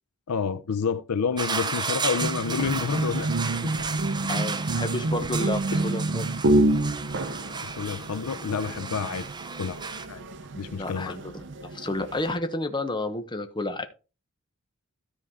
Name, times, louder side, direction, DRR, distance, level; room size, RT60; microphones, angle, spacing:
voice 1, 0.3-3.3 3.6-3.7 5.7-5.9 7.6-9.3 9.6-9.8 10.1-10.2 10.5-11.2, left 5 dB, 85° left, 0.5 m, -29 dB
sound 1, 1.4-10.1, right 4 dB, 20° right, 0.6 m, -34 dB
sound 2, 2.1-12.4, right 2 dB, 55° right, 0.8 m, -28 dB
voice 2, 4.3-6.3 10.7-13.9, left 2 dB, 20° left, 1.0 m, -31 dB
13.5 x 4.8 x 3.7 m
head